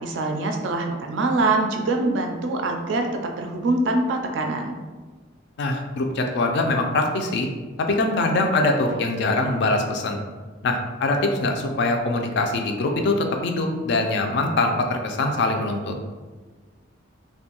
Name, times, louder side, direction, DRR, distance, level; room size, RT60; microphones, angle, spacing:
voice 1, 0.0-4.7, right 2 dB, 65° right, 4 dB, 0.3 m, -24 dB
voice 2, 5.6-7.5 7.8-10.2 10.6-15.9, left 2 dB, 60° left, 3 dB, 0.3 m, -23 dB
2.5 x 2.2 x 2.9 m, 1.3 s
head